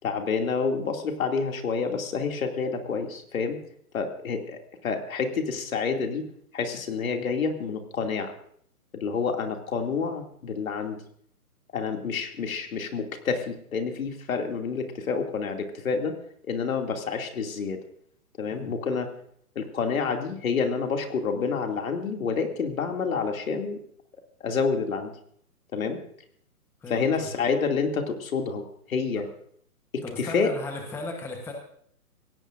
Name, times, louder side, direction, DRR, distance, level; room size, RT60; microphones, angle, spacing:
voice 1, 0.0-3.6 3.9-6.3 6.5-8.3 8.9-11.0 11.7-16.2 16.5-17.8 18.4-19.1 19.5-23.8 24.4-25.1 25.7-26.0 26.9-29.3 29.9-30.5, left 5 dB, 65° left, 4 dB, 2.7 m, -28 dB
voice 2, 26.8-27.3 29.2-29.3 30.0-31.5, left 2 dB, 5° left, 3 dB, 1.1 m, -36 dB
23.5 x 17.0 x 2.6 m, 0.64 s
hypercardioid pair, 150°, 45 cm